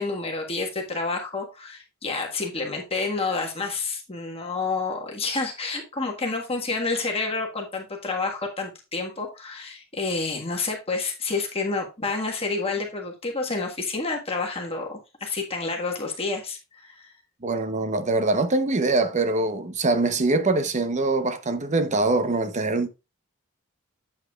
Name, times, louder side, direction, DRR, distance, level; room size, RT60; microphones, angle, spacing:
voice 1, 0.0-17.1, left 3 dB, 30° left, 1.5 m, -29 dB
voice 2, 17.4-22.9, right 2 dB, 35° right, 0.8 m, -23 dB
8.3 x 8.0 x 2.4 m
head